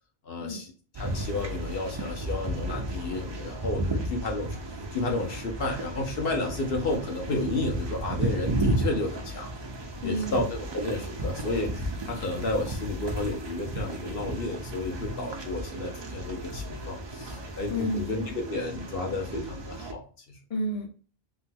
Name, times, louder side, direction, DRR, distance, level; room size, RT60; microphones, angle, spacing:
voice 1, 0.2-0.7 1.0-4.6 4.9-9.5 10.0-20.4, left 2 dB, 60° left, 1 dB, 1.0 m, -32 dB
sound 1, 0.9-19.9, right 1 dB, 40° right, 0.4 m, -33 dB
voice 2, 10.0-10.4 17.7-18.1 20.5-20.9, equal, 35° left, 2 dB, 0.6 m, -30 dB
3.7 x 2.2 x 2.7 m, 0.38 s
omnidirectional pair, 1.1 m